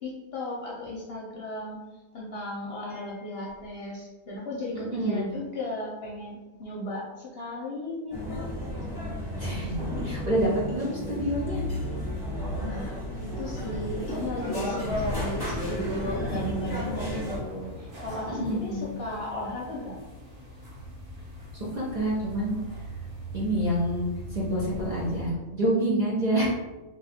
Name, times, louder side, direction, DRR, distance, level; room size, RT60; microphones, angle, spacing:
voice 1, 0.0-1.8 2.1-8.5 12.6-20.0, left 1 dB, 55° left, -4 dB, 0.8 m, -35 dB
voice 2, 4.7-5.3 9.4-11.6 18.3-18.9 21.7-22.6 23.3-26.5, right 1 dB, 40° right, -7 dB, 0.8 m, -27 dB
sound 1, 8.1-17.4, left 1 dB, 15° left, 1.0 m, -33 dB
sound 2, 8.2-15.7 16.0-19.7 20.0-20.2, equal, 75° right, 1.2 m, -43 dB
sound 3, 14.9-25.3, equal, 60° right, 1.4 m, -40 dB
2.7 x 2.3 x 4.1 m, 1.1 s
omnidirectional pair, 1.4 m